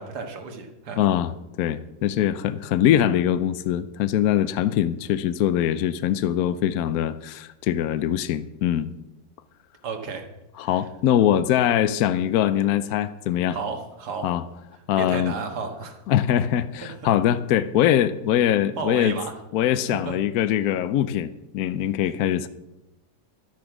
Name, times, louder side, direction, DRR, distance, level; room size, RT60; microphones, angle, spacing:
voice 1, 0.0-1.0 4.4-4.5 9.8-10.3 10.6-10.9 13.5-14.3 15.0-16.0 16.8-17.2 18.8-19.4 19.9-20.2 22.0-22.1, right 4 dB, 65° right, 2.0 m, -33 dB
voice 2, 1.0-1.3 1.6-8.9 10.6-13.6 14.2-14.4 14.9-15.3 16.1-19.1 19.5-22.5, left 11 dB, 70° left, 1.0 m, -22 dB
12.5 x 8.8 x 6.0 m
omnidirectional pair, 1.9 m